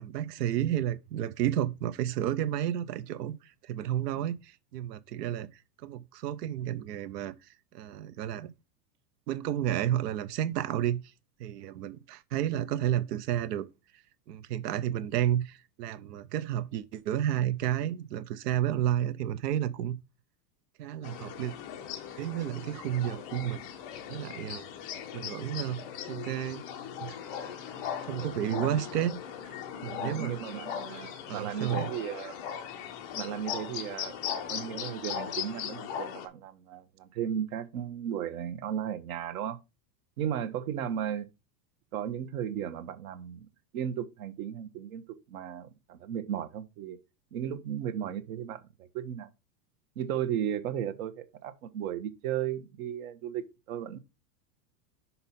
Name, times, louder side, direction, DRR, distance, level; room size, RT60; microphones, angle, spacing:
voice 1, 0.0-8.5 9.3-11.0 11.4-13.7 14.3-19.9 20.8-21.5 22.2-23.6 24.1-24.7 25.1-25.8 26.1-26.6 27.0-27.2 28.0-29.2 29.8-30.3 31.3-31.9, right 11 dB, 85° right, 0.9 m, -31 dB
sound 1, 21.0-36.3, left 8 dB, 20° left, 0.3 m, -39 dB
voice 2, 28.2-28.8 29.9-32.4 33.1-34.2 34.5-39.6 40.2-41.3 41.9-43.5 43.7-47.0 47.3-49.3 50.0-54.0, right 9 dB, 60° right, 1.1 m, -35 dB
5.6 x 5.6 x 4.3 m
supercardioid pair, 155°, 47 cm